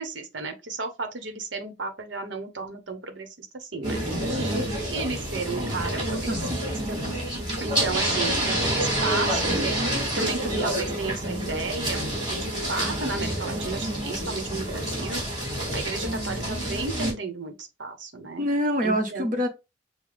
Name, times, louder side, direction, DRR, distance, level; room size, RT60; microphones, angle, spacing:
voice 1, 0.0-4.6 4.9-7.0 7.6-15.2 15.7-18.4 18.8-19.3, right 3 dB, 80° right, 1.1 m, -34 dB
sound 1, 3.8-17.1, right 1 dB, 25° right, 3.2 m, -28 dB
voice 2, 18.4-19.5, equal, 45° right, 1.2 m, -25 dB
6.8 x 2.3 x 3.4 m
head